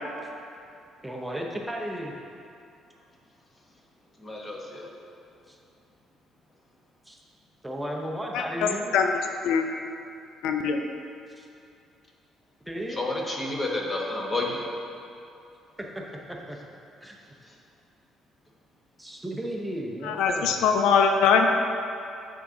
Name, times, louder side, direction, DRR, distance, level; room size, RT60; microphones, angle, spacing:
voice 1, 1.0-2.1 5.5-5.6 7.1-7.2 7.6-9.0 11.4-11.5 12.7-13.1 15.8-15.9 16.5-16.6 17.0-17.2 19.0-20.5, equal, 5° right, 0 dB, 0.6 m, -34 dB
voice 2, 4.2-4.9 12.9-14.6 17.5-17.6, left 2 dB, 20° left, -1 dB, 0.9 m, -30 dB
voice 3, 10.4-10.8 20.0-21.5, left 6 dB, 85° left, 5 dB, 0.4 m, -21 dB
9.1 x 3.7 x 3.7 m, 2.6 s
cardioid pair, 130°, 0 cm